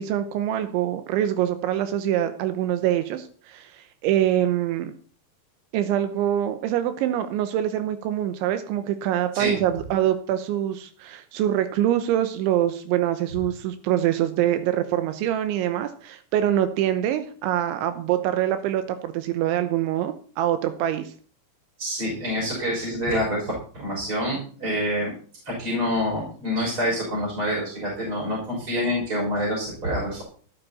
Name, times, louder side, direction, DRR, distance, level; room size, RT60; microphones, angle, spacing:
voice 1, 0.0-4.9 5.7-21.1, right 11 dB, 85° right, 10 dB, 3.3 m, -24 dB
voice 2, 21.8-25.1 25.5-30.2, equal, 25° right, -4 dB, 6.4 m, -27 dB
15.0 x 12.5 x 4.2 m, 0.44 s
omnidirectional pair, 5.3 m